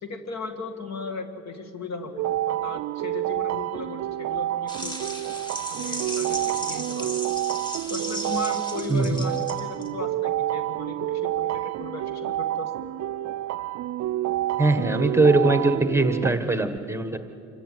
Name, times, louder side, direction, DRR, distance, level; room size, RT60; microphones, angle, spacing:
voice 1, 0.0-5.0 5.7-7.1 7.9-12.7, left 4 dB, 60° left, 7 dB, 2.1 m, -36 dB
sound 1, 2.2-16.3, right 14 dB, 65° right, 0.4 m, -29 dB
sound 2, 4.7-9.9, right 1 dB, 15° left, 2.9 m, -35 dB
voice 2, 8.9-9.2 14.6-17.2, right 2 dB, 10° right, 9 dB, 1.3 m, -21 dB
26.5 x 14.5 x 9.2 m, 2.7 s
cardioid pair, 90°, 30 cm